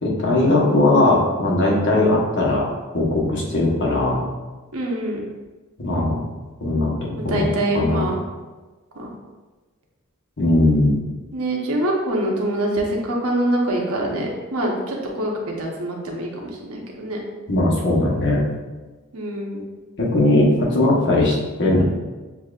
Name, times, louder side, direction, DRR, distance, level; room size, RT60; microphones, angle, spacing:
voice 1, 0.0-4.2 5.8-6.2 6.6-7.4 7.7-8.1 10.4-11.0 17.5-18.4 20.0-21.8, left 2 dB, 55° left, -3 dB, 1.1 m, -19 dB
voice 2, 4.7-5.2 7.2-8.1 9.0-9.1 11.3-17.2 19.1-19.6, right 1 dB, 85° right, -1 dB, 1.0 m, -24 dB
7.1 x 2.7 x 2.4 m, 1.2 s
head